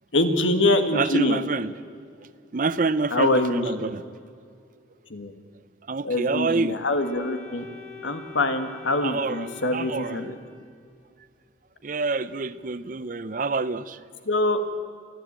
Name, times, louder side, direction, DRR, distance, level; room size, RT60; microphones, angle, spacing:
voice 1, 0.1-1.4 3.1-3.9 5.1-5.3 6.0-7.7 8.0-10.3 14.3-14.6, left 2 dB, 75° left, 8 dB, 1.6 m, -24 dB
voice 2, 0.9-1.7 2.5-4.0 5.9-6.8 9.0-10.3 11.8-14.0, right 3 dB, 45° right, 16 dB, 0.5 m, -27 dB
Organ, 7.0-10.9, left 5 dB, 40° left, 5.6 m, -44 dB
28.5 x 10.5 x 8.8 m, 2.3 s
head